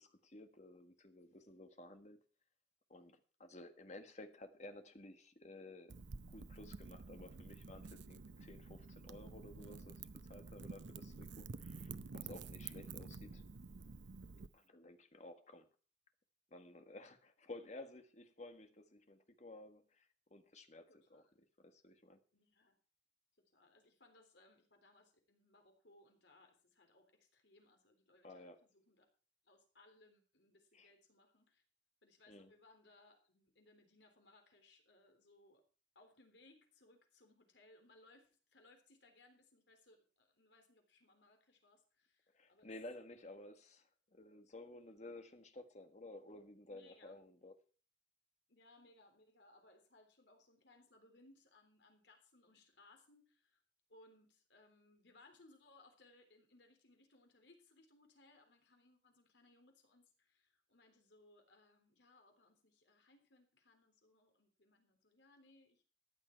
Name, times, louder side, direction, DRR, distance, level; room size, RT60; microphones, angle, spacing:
voice 1, 0.0-2.2 2.9-6.0 6.3-13.4 14.5-15.7 16.5-21.2 21.6-22.2 28.2-28.6 30.7-30.9 32.3-32.5 42.3-47.6, left 2 dB, 40° left, 7 dB, 1.6 m, -54 dB
Wind / Fire, 5.9-14.5, right 4 dB, 80° right, 0.7 m, -50 dB
voice 2, 20.9-21.3 22.3-22.8 23.5-29.1 29.4-31.6 32.0-35.6 36.0-42.7 46.7-47.2 48.5-53.6 53.9-65.9, left 2 dB, 75° left, 4 dB, 3.6 m, -67 dB
14.5 x 10.5 x 4.5 m, 0.38 s
head